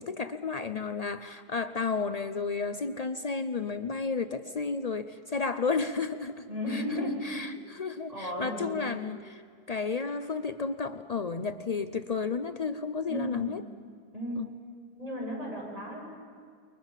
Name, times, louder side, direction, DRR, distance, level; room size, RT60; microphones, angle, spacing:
voice 1, 0.0-9.4 9.7-13.6 14.3-14.5, left 4 dB, 85° left, 10 dB, 0.3 m, -32 dB
voice 2, 6.5-7.2 7.5-7.6 8.1-8.8 13.1-13.5 14.1-14.4 15.0-16.0, equal, 20° right, -3 dB, 7.5 m, -35 dB
29.0 x 22.5 x 7.4 m, 2.1 s
omnidirectional pair, 1.7 m